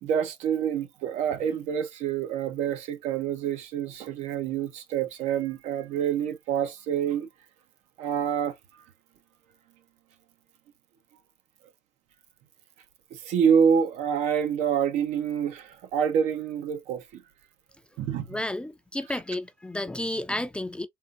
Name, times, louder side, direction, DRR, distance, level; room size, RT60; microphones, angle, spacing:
voice 1, 0.0-7.3 8.0-8.8 13.1-17.2 18.0-18.3, right 8 dB, 80° right, 0.8 m, -27 dB
voice 2, 18.3-20.9, left 1 dB, 10° left, 0.4 m, -32 dB
3.7 x 2.5 x 2.5 m
supercardioid pair, 90°, 12 cm